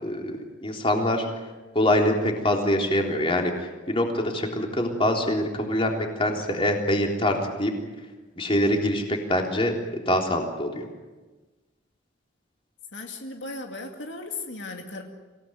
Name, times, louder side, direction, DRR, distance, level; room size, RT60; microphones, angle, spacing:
voice 1, 0.0-1.3 1.8-7.7 8.4-9.0 9.3-9.7 10.1-10.8, left 1 dB, 30° left, 1 dB, 3.6 m, -24 dB
voice 2, 12.9-15.0, left 3 dB, 75° left, 3 dB, 2.3 m, -36 dB
26.5 x 17.5 x 9.3 m, 1.2 s
head